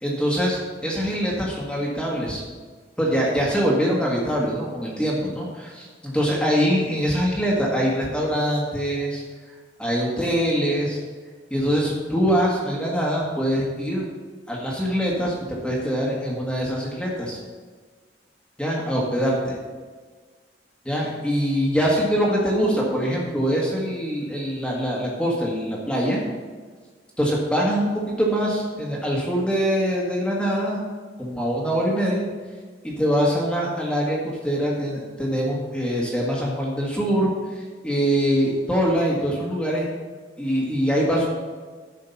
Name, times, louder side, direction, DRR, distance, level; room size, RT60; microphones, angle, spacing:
voice 1, 0.0-2.4 3.0-9.2 9.8-11.0 11.5-14.0 14.5-15.3 15.6-17.4 18.6-19.4 20.8-26.2 27.2-30.8 31.2-32.3 32.8-39.9 40.4-41.3, equal, 5° left, -4 dB, 1.6 m, -23 dB
11.0 x 5.1 x 5.7 m, 1.5 s
head